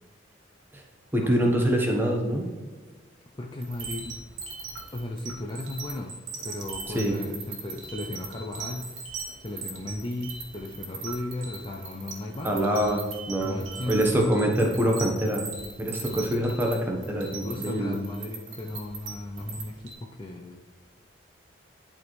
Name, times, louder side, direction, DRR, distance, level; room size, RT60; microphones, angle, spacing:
voice 1, 1.1-2.5 6.9-7.2 12.4-13.0 13.3-13.5 13.9-15.5 15.8-18.0, right 1 dB, 10° right, 0 dB, 1.0 m, -25 dB
voice 2, 3.4-4.2 4.9-6.2 6.4-12.9 13.4-14.5 16.1-16.3 17.2-20.6, left 2 dB, 25° left, 1 dB, 0.5 m, -36 dB
sound 1, 3.6-19.9, right 4 dB, 90° right, 1.6 m, -40 dB
11.0 x 4.3 x 3.1 m, 1.4 s
head